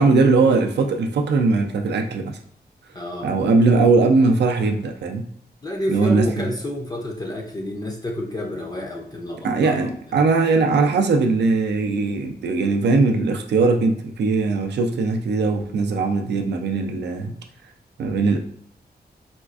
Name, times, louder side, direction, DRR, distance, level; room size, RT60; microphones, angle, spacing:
voice 1, 0.0-2.4 3.2-5.3 5.9-6.5 9.4-17.4 18.0-18.4, right 3 dB, 80° right, 4 dB, 0.4 m, -20 dB
voice 2, 2.9-3.3 5.6-9.9 17.2-17.3, left 1 dB, 25° left, 0 dB, 0.4 m, -29 dB
4.2 x 2.3 x 2.4 m, 0.67 s
wide cardioid pair, 160°, 17 cm